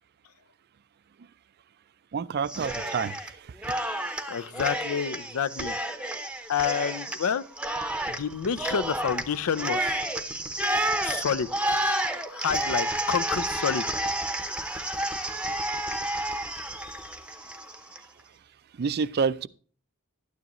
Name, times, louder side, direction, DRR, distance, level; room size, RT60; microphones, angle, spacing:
voice 1, 2.1-3.4 3.7-3.8 11.9-12.1 18.8-19.5, right 6 dB, 50° right, 0.4 m, -29 dB
Cheering, 2.5-3.3 3.6-18.0, right 1 dB, 5° right, 0.7 m, -30 dB
voice 2, 4.3-5.7 6.5-7.4 8.1-10.0 11.0-11.5 12.3-13.9, left 7 dB, 75° left, 0.5 m, -28 dB
12.0 x 9.4 x 3.0 m
head